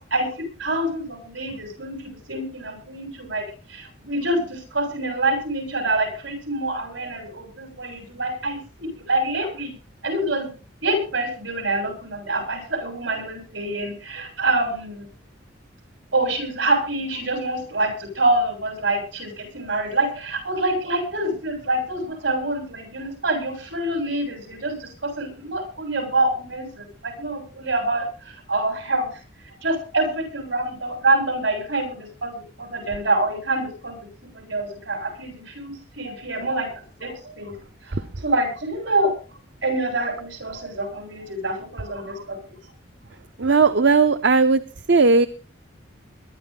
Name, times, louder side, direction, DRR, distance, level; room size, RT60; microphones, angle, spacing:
voice 1, 0.6-3.4 3.7-9.7 10.0-10.5 10.8-15.1 16.1-28.1 28.5-29.1 29.6-34.0 34.3-37.5 37.8-39.1 39.6-42.5, right 2 dB, 80° right, 5 dB, 7.7 m, -26 dB
voice 2, 43.4-44.6 44.9-45.3, right 4 dB, 65° right, 12 dB, 0.7 m, -16 dB
22.0 x 12.0 x 3.9 m, 0.36 s
head